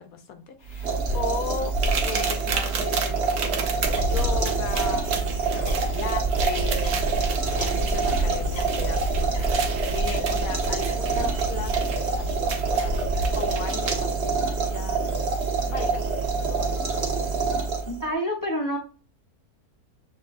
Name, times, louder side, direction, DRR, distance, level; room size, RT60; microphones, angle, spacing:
voice 1, 0.0-1.8 2.0-5.1 5.7-7.2 7.6-12.9 13.3-15.0 15.7-16.9, left 7 dB, 75° left, 7 dB, 1.1 m, -37 dB
sound 1, 0.7-18.1, right 4 dB, 45° right, 1.4 m, -26 dB
sound 2, 1.8-14.1 15.4-15.5 16.1-16.2, right 6 dB, 70° right, 1.1 m, -34 dB
sound 3, 3.8-13.6, equal, 40° left, 0.9 m, -31 dB
voice 2, 17.9-18.8, equal, 20° left, 0 dB, 0.6 m, -27 dB
7.2 x 2.6 x 2.5 m, 0.36 s
omnidirectional pair, 1.6 m